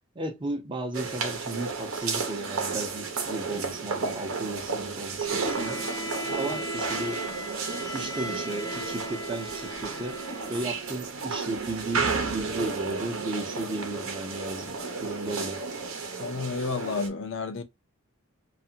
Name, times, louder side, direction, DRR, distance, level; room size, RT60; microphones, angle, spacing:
voice 1, 0.1-5.9 6.3-7.2 7.9-10.2 10.5-15.6, right 2 dB, 25° right, 0.6 m, -34 dB
sound 1, 0.9-17.1, right 4 dB, 80° right, 0.8 m, -32 dB
Bowed string instrument, 5.2-10.9, left 1 dB, 20° left, 0.6 m, -38 dB
voice 2, 16.2-17.6, left 4 dB, 65° left, 0.5 m, -31 dB
2.5 x 2.4 x 2.7 m
head